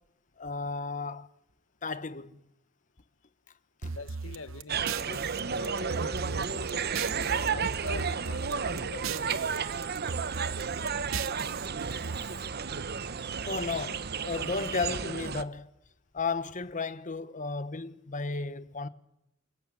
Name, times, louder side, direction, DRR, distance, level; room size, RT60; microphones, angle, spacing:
voice 1, 0.4-1.3 1.8-2.4 3.8-3.9 12.2-12.5 13.5-15.7 16.1-18.9, left 4 dB, 40° left, 1.1 m, -34 dB
sound 1, 3.8-7.5 7.7-9.6 9.8-12.2, right 5 dB, 80° right, 1.1 m, -38 dB
voice 2, 3.9-9.7, left 3 dB, 75° left, 1.7 m, -45 dB
sound 2, 4.7-15.4, right 6 dB, 55° right, 1.0 m, -32 dB
28.5 x 18.5 x 9.0 m
head